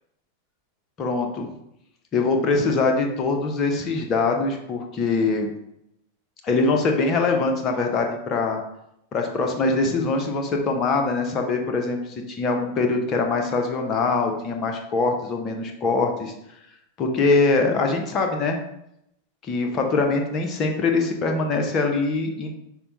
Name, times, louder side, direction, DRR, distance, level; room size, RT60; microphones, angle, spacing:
voice 1, 1.0-1.5 2.1-5.5 6.4-8.6 9.1-16.3 17.0-18.6 19.4-22.5, left 3 dB, 30° left, 3 dB, 0.8 m, -23 dB
5.6 x 2.2 x 3.9 m, 0.79 s
figure-of-eight pair, 90°, 0 cm